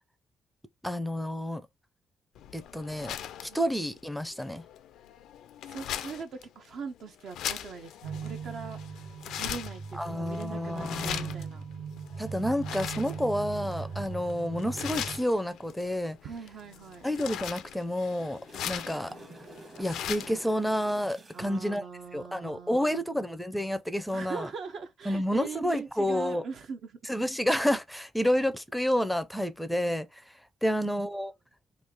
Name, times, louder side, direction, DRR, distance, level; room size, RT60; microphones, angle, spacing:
voice 1, 0.8-1.6 2.5-3.2 3.4-4.6 9.9-11.3 12.2-16.2 17.0-18.4 18.7-19.1 19.8-21.8 22.1-24.5 25.1-26.4 27.1-30.3 30.6-31.3, equal, ahead, 0.4 m, -29 dB
sound 1, 2.3-20.4, left 10 dB, 80° left, 0.4 m, -40 dB
voice 2, 5.6-8.8 9.4-11.6 16.2-17.1 21.3-23.2 24.1-27.1 30.6-30.8, right 5 dB, 65° right, 0.6 m, -41 dB
sound 2, 8.0-15.2, right 6 dB, 80° right, 1.2 m, -39 dB
sound 3, 18.4-21.8 25.6-25.8, right 2 dB, 40° right, 1.1 m, -49 dB
3.1 x 2.4 x 3.5 m
cardioid pair, 90°, 0 cm